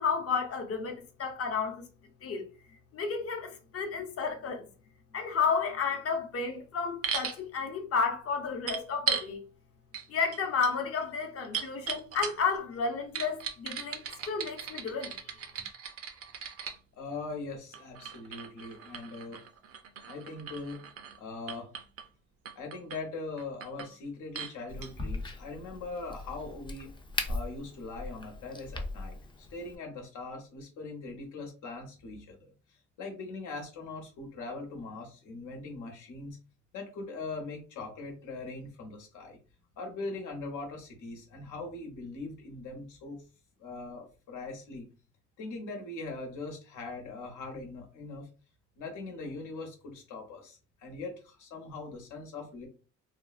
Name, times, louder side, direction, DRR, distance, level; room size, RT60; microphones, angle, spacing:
voice 1, 0.0-1.8 2.2-2.5 2.9-4.7 5.1-9.4 10.1-15.1, left 5 dB, 50° left, 0.8 m, -32 dB
sound 1, 7.0-7.4 8.7-9.3 9.9-10.1 10.3-12.6 13.1-16.8 17.7-21.2 21.5-22.1 22.5-23.0 23.4-23.9 24.3-24.5 24.8-24.9, right 7 dB, 50° right, 0.5 m, -37 dB
voice 2, 17.0-19.4 20.1-20.8 21.2-21.7 22.5-26.9 27.3-32.5 33.0-36.4 36.7-39.4 39.8-43.2 43.6-44.9 45.4-48.3 48.8-52.7, left 3 dB, 85° left, 1.0 m, -41 dB
Crack, 24.7-29.8, left 2 dB, 15° left, 0.4 m, -39 dB
3.3 x 2.0 x 2.4 m
cardioid pair, 90°, 30 cm